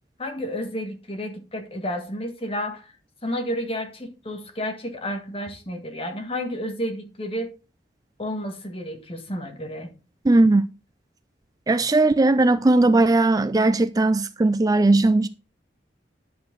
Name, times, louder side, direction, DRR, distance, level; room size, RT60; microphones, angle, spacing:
voice 1, 0.2-2.9 3.2-7.5 8.2-9.9, equal, 30° left, 1.8 m, -31 dB
voice 2, 10.3-10.6 11.7-15.3, right 2 dB, 20° right, 0.4 m, -18 dB
10.5 x 6.6 x 3.9 m
head